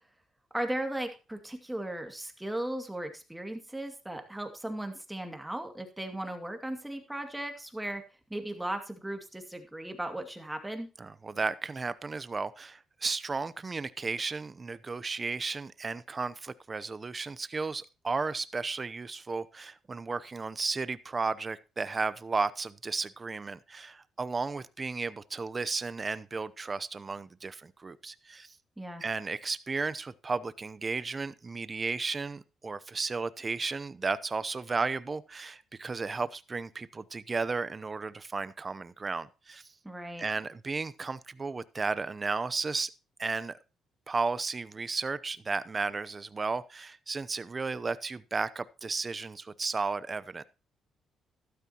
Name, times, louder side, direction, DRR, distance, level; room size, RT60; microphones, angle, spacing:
voice 1, 0.5-8.0 8.3-10.9 28.8-29.0 39.8-40.3, right 1 dB, 10° right, 5 dB, 2.3 m, -37 dB
voice 2, 11.0-28.5 29.0-39.6 40.2-42.9 43.2-43.6 44.1-50.4, right 4 dB, 30° right, 16 dB, 0.7 m, -34 dB
13.0 x 12.0 x 2.9 m, 0.32 s
cardioid pair, 90°, 0 cm